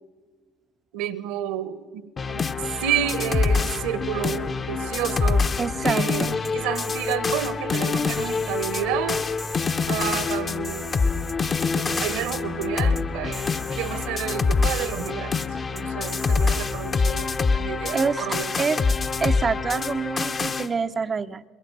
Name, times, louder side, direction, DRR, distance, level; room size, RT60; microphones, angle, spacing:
voice 1, 0.9-2.4 2.8-5.5 5.8-9.2 9.9-11.0 11.7-18.5, right 11 dB, 65° right, 17 dB, 1.1 m, -30 dB
sound 1, 2.2-20.7, left 4 dB, 30° left, 0.9 m, -25 dB
sound 2, 2.7-15.4, left 7 dB, 55° left, 1.6 m, -46 dB
voice 2, 5.6-6.4 17.9-18.8 19.2-21.4, right 5 dB, 30° right, 11 dB, 0.6 m, -26 dB
sound 3, 6.1-7.2 7.4-7.8 8.1-8.8 9.4-10.4 10.6-11.7 11.9-12.4 12.6-12.7 13.0-13.1 13.3-14.1 14.7-15.1 15.4-15.5 15.8-17.1, equal, 5° left, 0.8 m, -40 dB
22.5 x 22.0 x 6.5 m, 1.4 s
figure-of-eight pair, 60°, 0 cm